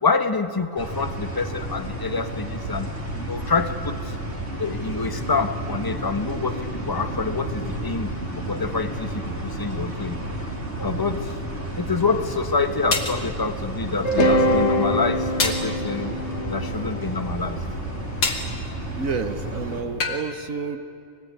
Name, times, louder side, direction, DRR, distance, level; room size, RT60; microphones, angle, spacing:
voice 1, 0.0-4.1 4.6-10.2 10.7-11.4 11.7-16.1 16.5-17.6, left 4 dB, 15° left, 9 dB, 0.8 m, -27 dB
sound 1, 0.8-19.8, right 1 dB, 30° right, 4.1 m, -31 dB
sound 2, 12.9-13.2 15.4-15.7 18.2-18.5 20.0-20.2, left 3 dB, 75° left, 3.1 m, -24 dB
sound 3, 14.0-18.2, equal, 40° left, 1.7 m, -24 dB
voice 2, 19.0-20.8, right 5 dB, 50° right, 9 dB, 1.3 m, -29 dB
25.0 x 20.0 x 9.5 m, 2.6 s
omnidirectional pair, 2.0 m